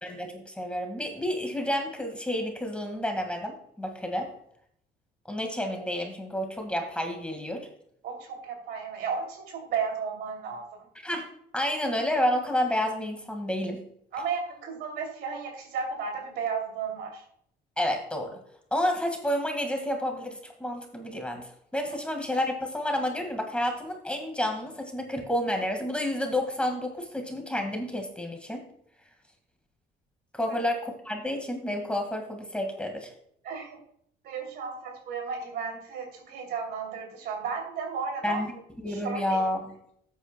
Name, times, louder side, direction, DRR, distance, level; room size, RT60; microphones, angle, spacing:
voice 1, 0.0-4.3 5.3-7.7 11.0-11.3 11.5-13.8 17.8-18.4 18.7-21.4 21.7-28.6 30.3-33.1 38.2-38.5 38.8-39.7, left 1 dB, 5° left, 4 dB, 1.7 m, -30 dB
voice 2, 8.0-10.9 14.1-17.2 30.5-30.6 33.4-33.8 34.2-38.4 38.9-39.5, right 5 dB, 75° right, 2 dB, 2.8 m, -34 dB
13.0 x 8.6 x 2.2 m, 0.68 s
cardioid pair, 110°, 17 cm